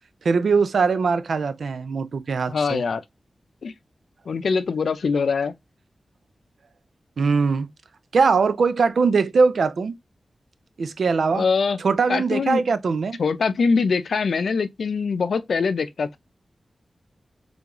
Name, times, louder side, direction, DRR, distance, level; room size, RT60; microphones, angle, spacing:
voice 1, 0.2-2.8 7.2-7.7 8.1-9.9 10.8-11.5 11.8-13.2, right 4 dB, 80° right, 0.4 m, -21 dB
voice 2, 2.5-3.0 3.6-3.7 4.3-5.5 11.3-11.8 12.1-12.6 13.2-16.2, left 5 dB, 85° left, 0.5 m, -23 dB
3.8 x 3.4 x 2.9 m
wide cardioid pair, 140°, 0 cm